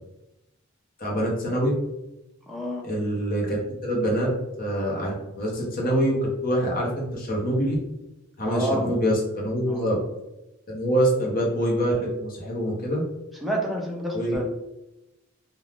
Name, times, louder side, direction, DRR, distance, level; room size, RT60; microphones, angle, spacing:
voice 1, 1.0-1.7 2.8-3.6 3.8-4.3 4.6-7.8 8.4-10.0 10.7-13.0 14.1-14.4, equal, 45° left, -3 dB, 0.8 m, -25 dB
voice 2, 2.5-2.9 8.4-8.8 9.7-10.0 13.4-14.4, right 1 dB, ahead, -2 dB, 0.5 m, -29 dB
3.3 x 2.3 x 2.3 m, 0.92 s
head